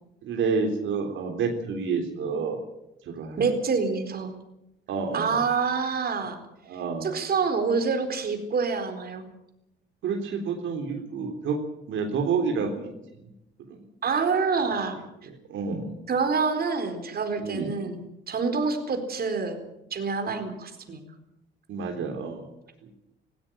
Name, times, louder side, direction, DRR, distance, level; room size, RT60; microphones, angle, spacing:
voice 1, 0.2-2.6 3.1-3.5 4.9-5.3 6.7-7.1 10.0-11.6 11.9-12.9 13.7-13.8 15.5-15.9 17.4-17.7 20.3-20.4 21.7-22.5 22.8-22.9, right 5 dB, 80° right, 3 dB, 3.6 m, -29 dB
voice 2, 3.4-4.3 5.1-6.4 7.0-9.2 14.0-15.0 16.1-19.6 19.9-21.0, right 5 dB, 50° right, 6 dB, 4.3 m, -27 dB
17.5 x 16.5 x 9.1 m, 0.87 s
cardioid pair, 90°, 20 cm